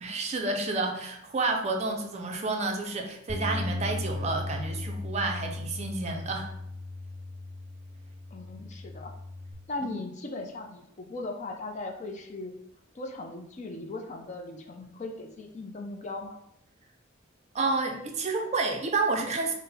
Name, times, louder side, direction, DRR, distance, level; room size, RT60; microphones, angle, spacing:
voice 1, 0.0-6.5 9.8-10.0 17.5-19.5, right 3 dB, 35° right, 3 dB, 0.4 m, -30 dB
Bass guitar, 3.3-9.5, left 2 dB, 15° right, 0.8 m, -37 dB
voice 2, 8.3-9.1 9.7-12.5 12.9-16.4, left 2 dB, 35° left, 3 dB, 0.4 m, -38 dB
3.8 x 2.1 x 4.0 m, 0.74 s
head